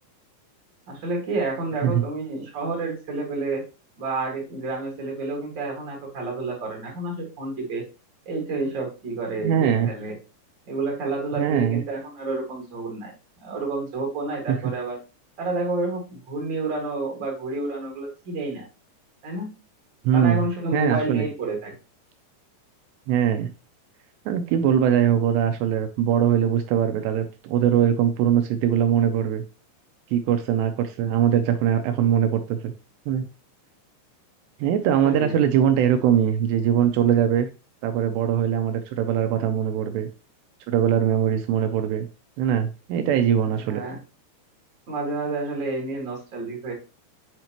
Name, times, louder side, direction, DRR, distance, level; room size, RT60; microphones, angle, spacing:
voice 1, 0.9-3.6 4.0-7.8 8.2-10.1 10.7-13.1 13.4-15.0 15.4-18.7 19.2-19.5 20.1-21.8 34.9-35.4 43.6-44.0 44.9-46.7, right 3 dB, 55° right, -1 dB, 1.2 m, -29 dB
voice 2, 9.4-9.9 11.4-11.8 14.5-14.6 20.0-20.4 20.7-21.3 23.1-23.5 24.3-29.4 30.1-32.7 33.1-33.3 34.6-37.5 37.8-40.1 40.7-42.1 42.4-43.8, right 9 dB, 80° right, 7 dB, 2.5 m, -21 dB
7.8 x 5.0 x 2.9 m, 0.31 s
omnidirectional pair, 5.2 m